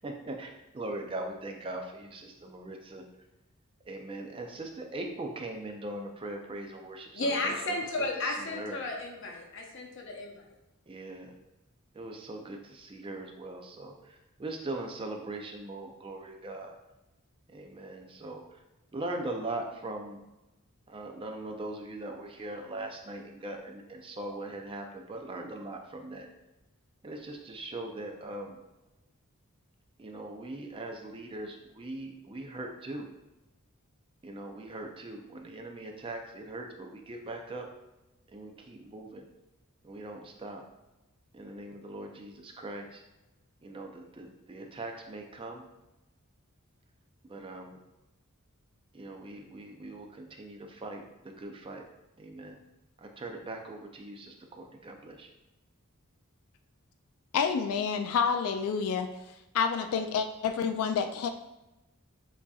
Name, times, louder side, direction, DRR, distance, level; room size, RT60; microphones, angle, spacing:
voice 1, 0.0-3.0 3.9-7.5 8.2-8.8 10.9-11.3 11.9-16.8 17.5-18.4 18.9-20.2 20.9-26.3 27.0-28.6 30.0-33.1 34.2-37.7 38.3-39.2 39.8-40.6 41.3-43.0 43.6-45.6 47.3-47.8 48.9-51.0 51.4-51.8 52.2-52.6 53.0-55.3, right 2 dB, 25° right, 3 dB, 0.4 m, -40 dB
voice 2, 7.1-10.4, left 2 dB, 60° left, 1 dB, 0.8 m, -33 dB
voice 3, 57.3-59.1 59.5-61.3, left 6 dB, 80° left, 8 dB, 0.3 m, -28 dB
7.1 x 2.7 x 2.3 m, 1.0 s
head